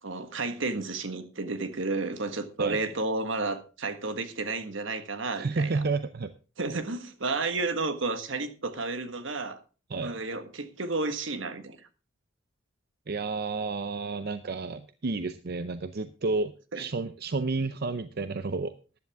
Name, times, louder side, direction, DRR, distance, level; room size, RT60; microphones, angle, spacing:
voice 1, 0.0-5.8 6.6-9.6 10.0-11.8 16.7-16.8, right 3 dB, 75° right, 10 dB, 1.5 m, -32 dB
voice 2, 5.4-6.3 9.9-10.2 13.1-18.7, right 3 dB, 55° right, 11 dB, 0.6 m, -31 dB
14.0 x 10.5 x 3.5 m, 0.34 s
head